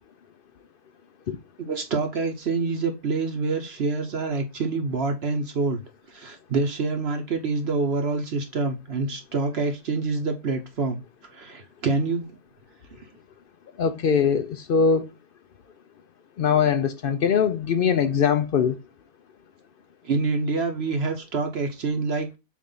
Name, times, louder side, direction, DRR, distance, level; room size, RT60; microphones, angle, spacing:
voice 1, 1.6-5.8 6.1-11.0 11.3-12.4 20.0-22.3, right 4 dB, 50° right, 0.9 m, -26 dB
voice 2, 13.8-15.1 16.4-18.8, left 6 dB, 80° left, 0.5 m, -22 dB
7.3 x 2.5 x 5.5 m
omnidirectional pair, 1.6 m